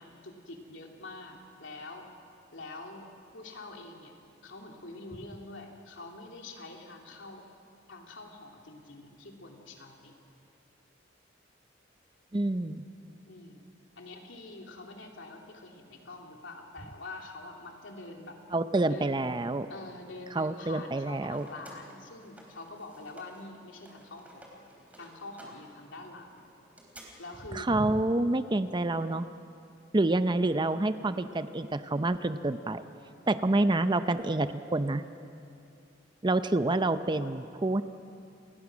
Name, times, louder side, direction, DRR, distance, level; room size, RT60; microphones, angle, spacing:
voice 1, 0.0-2.1 2.5-4.1 4.4-7.4 7.9-10.1 13.3-13.7 14.0-18.4 18.9-19.2 19.7-24.6 25.0-26.5 27.2-27.7 37.1-37.5, left 2 dB, 80° left, 1 dB, 3.1 m, -45 dB
voice 2, 12.3-12.9 18.5-19.7 20.4-21.5 27.5-29.3 29.9-32.9 33.3-35.0 36.2-37.8, right 2 dB, 25° right, 11 dB, 0.6 m, -28 dB
sound 1, 20.9-23.5 23.7-27.0, right 1 dB, 10° right, 4.0 m, -54 dB
29.0 x 20.0 x 6.2 m, 2.6 s
head